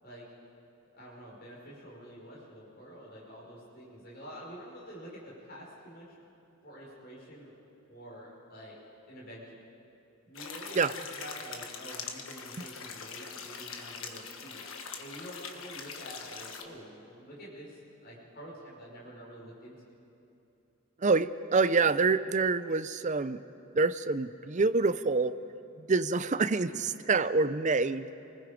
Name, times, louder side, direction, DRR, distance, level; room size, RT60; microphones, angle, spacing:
voice 1, 1.0-6.1 6.6-7.5 7.9-8.8 9.1-9.6 10.2-14.7 15.0-19.7, equal, 45° left, -5 dB, 5.2 m, -48 dB
sound 1, 10.3-16.6, left 5 dB, 70° left, 1.5 m, -42 dB
voice 2, 21.0-23.4 23.7-25.3 25.8-28.1, right 4 dB, 35° right, 13 dB, 0.6 m, -26 dB
28.0 x 20.0 x 5.1 m, 2.8 s
head